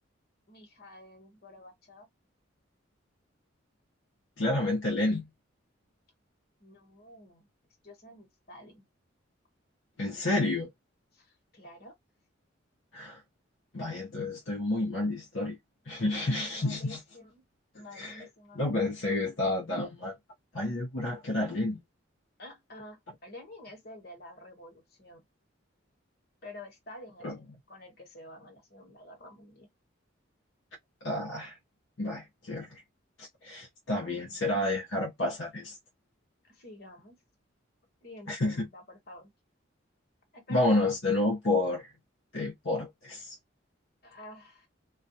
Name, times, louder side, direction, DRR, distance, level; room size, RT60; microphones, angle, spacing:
voice 1, 0.5-2.1 6.6-7.5 7.8-8.8 11.1-11.9 16.4-17.4 17.7-19.1 22.4-25.2 26.4-29.7 33.9-34.3 36.4-37.2 38.0-39.3 40.3-40.9 41.2-41.3 44.0-44.7, left 1 dB, 50° left, 1.2 m, -49 dB
voice 2, 4.4-5.3 10.0-10.7 12.9-13.2 13.7-15.6 15.9-17.0 18.0-18.2 18.6-20.1 20.5-21.8 27.2-27.4 31.0-31.6 32.0-32.8 33.2-35.8 38.3-38.7 40.5-41.9 42.3-43.3, left 2 dB, 70° left, 0.8 m, -30 dB
2.4 x 2.2 x 2.7 m
head